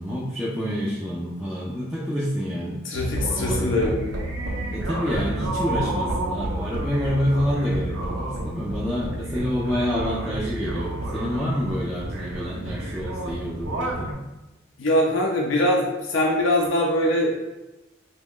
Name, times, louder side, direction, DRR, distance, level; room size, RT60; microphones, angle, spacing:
voice 1, 0.0-2.8 3.3-3.9 4.7-14.2, equal, ahead, -8 dB, 0.4 m, -27 dB
voice 2, 2.9-4.0 14.8-17.3, left 1 dB, 75° left, -1 dB, 0.5 m, -22 dB
sound 1, 2.9-14.1, right 1 dB, 70° right, 0.6 m, -30 dB
3.0 x 2.2 x 3.6 m, 1.0 s
head